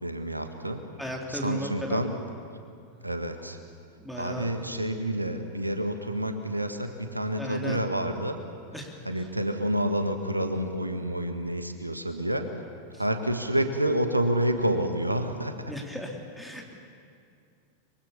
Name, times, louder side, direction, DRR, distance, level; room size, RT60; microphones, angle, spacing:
voice 1, 0.0-0.8 1.3-2.1 3.0-3.6 4.2-8.4 9.0-12.5 13.0-15.5, right 1 dB, 85° right, 7 dB, 1.6 m, -28 dB
voice 2, 1.0-2.0 4.0-4.5 7.4-7.8 8.7-9.3 12.9-13.0 15.6-16.7, equal, ahead, 0 dB, 3.0 m, -36 dB
24.0 x 22.5 x 7.0 m, 2.4 s
figure-of-eight pair, 90°, 0 cm